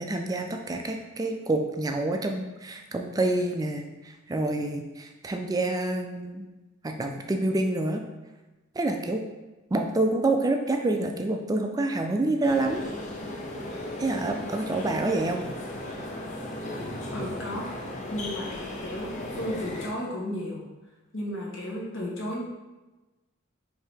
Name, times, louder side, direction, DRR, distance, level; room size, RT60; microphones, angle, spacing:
voice 1, 0.0-6.5 6.8-8.0 8.8-9.2 9.7-12.8 14.0-15.4, right 2 dB, 20° right, 4 dB, 0.3 m, -27 dB
sound 1, 12.4-19.9, left 1 dB, 35° left, 0.5 m, -36 dB
voice 2, 17.1-17.7 18.1-20.6 21.1-22.4, left 1 dB, 60° left, -4 dB, 1.2 m, -34 dB
4.5 x 2.8 x 3.4 m, 1.1 s
head